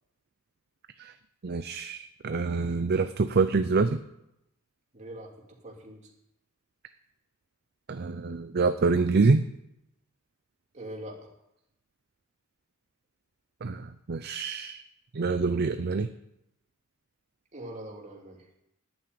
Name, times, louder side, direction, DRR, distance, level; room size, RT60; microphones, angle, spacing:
voice 1, 1.4-4.0 7.9-9.4 13.6-14.8 15.1-16.1, right 4 dB, 50° right, 10 dB, 0.5 m, -26 dB
voice 2, 4.9-6.1 10.7-11.2 17.5-18.5, right 1 dB, 35° right, -1 dB, 3.0 m, -42 dB
10.5 x 8.8 x 9.3 m, 0.85 s
head